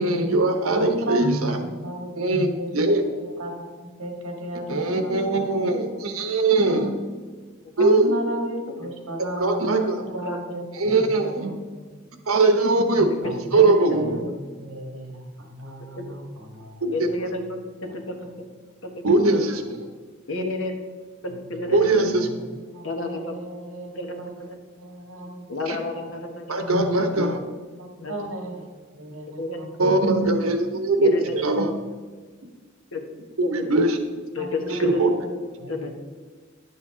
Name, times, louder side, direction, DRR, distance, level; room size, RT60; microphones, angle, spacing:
voice 1, 0.0-1.5 2.2-2.5 2.7-3.0 4.7-7.0 7.8-8.1 9.4-10.0 10.8-11.5 12.3-13.1 13.5-14.2 19.0-19.8 21.7-22.3 25.7-25.8 26.5-27.4 29.8-31.7 33.5-34.0 34.7-35.1, right 2 dB, 85° right, 6 dB, 1.1 m, -21 dB
voice 2, 0.7-5.8 7.8-11.9 13.2-17.4 17.8-18.3 19.5-19.7 21.3-23.9 24.2-25.5 27.8-30.4 31.3-31.7 34.4-35.3 35.6-36.0, right 1 dB, 70° right, 2 dB, 2.1 m, -36 dB
voice 3, 13.5-13.9 16.0-16.1 16.8-17.4 17.8-18.2 18.8-18.9 20.3-20.7 21.2-22.0 22.8-23.3 23.9-24.5 25.5-26.6 28.0-28.1 29.4-29.6 31.0-31.4 32.9-33.0 33.4-33.7 34.3-35.4 35.7-35.9, left 2 dB, 70° left, 3 dB, 1.5 m, -30 dB
11.0 x 8.2 x 3.9 m, 1.5 s
head